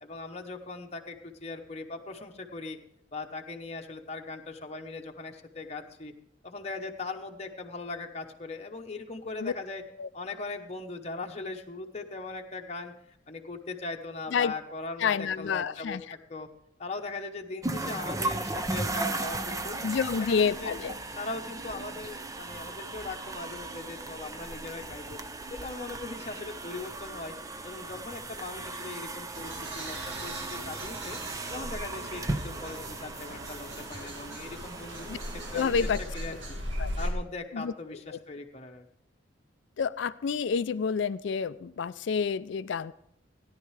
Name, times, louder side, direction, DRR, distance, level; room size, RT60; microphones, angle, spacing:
voice 1, 0.0-2.8 3.1-6.1 6.4-9.8 10.1-12.9 13.3-16.0 16.3-16.5 16.8-20.7 21.2-25.2 25.5-27.3 27.6-31.2 31.5-35.1 35.3-35.7 36.1-36.6 37.0-38.9, left 3 dB, 35° left, 3 dB, 0.9 m, -39 dB
voice 2, 15.0-16.0 19.8-20.9 35.1-35.2 35.5-36.0 36.8-36.9 37.5-37.7 38.1-38.2 39.8-42.9, left 6 dB, 70° left, 15 dB, 0.4 m, -28 dB
sound 1, 17.6-36.5, right 2 dB, 15° right, 0.5 m, -37 dB
sound 2, 29.3-37.1, equal, 75° right, 2.2 m, -38 dB
17.5 x 10.5 x 3.2 m, 0.74 s
head